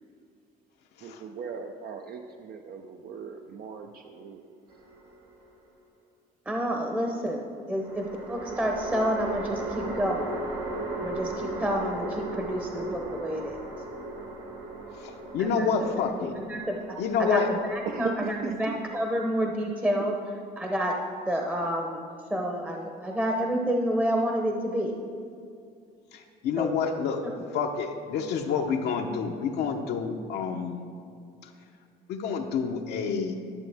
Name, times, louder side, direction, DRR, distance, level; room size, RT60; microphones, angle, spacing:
voice 1, 1.0-4.6 17.9-18.8, right 6 dB, 60° right, 4 dB, 0.5 m, -38 dB
sound 1, 4.7-5.6 7.8-19.2, right 2 dB, 80° right, 1.5 m, -37 dB
voice 2, 6.5-10.4 11.0-13.6 15.4-15.9 16.4-16.8 17.2-20.1 20.6-20.9 21.3-22.0 22.3-24.9 26.6-26.7, equal, 10° right, 1 dB, 0.8 m, -29 dB
voice 3, 15.0-16.3 17.0-17.5 26.1-27.2 27.5-30.8 31.4-31.5 32.1-33.3, left 6 dB, 80° left, 2 dB, 0.8 m, -28 dB
11.5 x 6.9 x 3.5 m, 2.4 s
cardioid pair, 110°, 17 cm